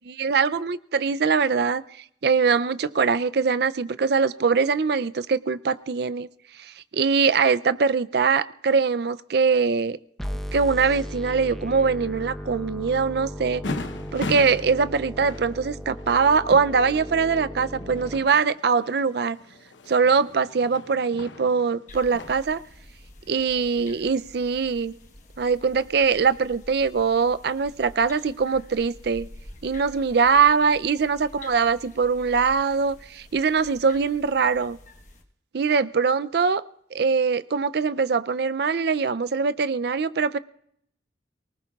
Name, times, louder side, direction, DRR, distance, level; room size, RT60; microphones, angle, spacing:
voice 1, 0.0-1.8 2.2-6.3 6.6-10.0 10.5-13.6 14.1-19.4 19.9-22.6 23.3-24.9 25.4-29.3 29.6-34.8 35.5-36.6 36.9-40.4, right 5 dB, 55° right, 15 dB, 0.4 m, -22 dB
sound 1, 10.2-18.2, equal, ahead, 0.6 m, -36 dB
sound 2, 13.6-22.4, left 2 dB, 75° left, 0.8 m, -38 dB
sound 3, 21.9-35.2, left 1 dB, 40° left, 1.2 m, -48 dB
23.5 x 19.0 x 2.4 m, 0.70 s
head